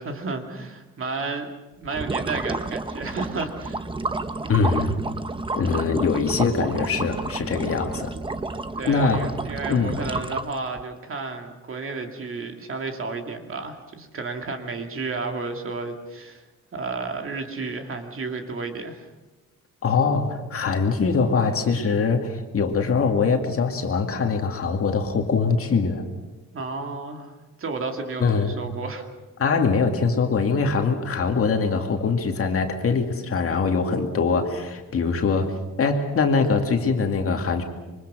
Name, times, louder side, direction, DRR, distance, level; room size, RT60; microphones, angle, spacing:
voice 1, 0.0-3.8 8.8-16.4 16.7-19.1 26.5-27.3 27.6-29.0, right 3 dB, 40° right, 4 dB, 2.4 m, -32 dB
sound 1, 1.8-10.8, right 3 dB, 15° right, 0.8 m, -30 dB
voice 2, 4.5-5.0 5.6-8.1 8.9-9.3 9.7-10.0 19.8-26.0 28.2-28.6 29.4-37.6, left 4 dB, 45° left, 4 dB, 2.4 m, -23 dB
26.0 x 24.0 x 6.3 m, 1.1 s
wide cardioid pair, 180°, 32 cm